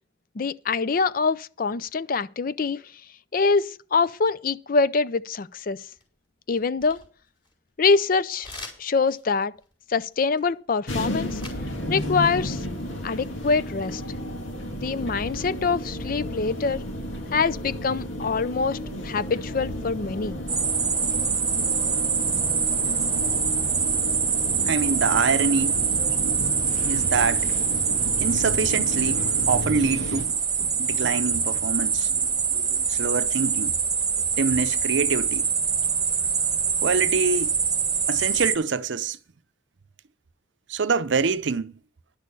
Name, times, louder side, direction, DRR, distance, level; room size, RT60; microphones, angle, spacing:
voice 1, 0.4-2.8 3.3-5.8 6.5-7.0 7.8-8.5 8.8-9.5 9.9-11.4 11.9-12.6 13.0-14.0 14.8-16.8 17.3-18.8 19.0-20.4, left 4 dB, 45° left, 0.4 m, -24 dB
sound 1, 5.6-6.2 6.5-7.8 8.4-11.7 12.0-12.8, left 3 dB, 25° left, 4.1 m, -44 dB
sound 2, 10.9-30.3, equal, 90° left, 2.0 m, -33 dB
sound 3, 20.5-38.6, right 6 dB, 20° right, 1.1 m, -24 dB
voice 2, 24.7-25.8 26.8-27.5 28.2-32.2 32.5-33.7 34.4-35.4 36.8-37.5 38.1-39.2 40.7-41.7, right 4 dB, 70° right, 0.6 m, -26 dB
11.0 x 6.4 x 6.8 m
head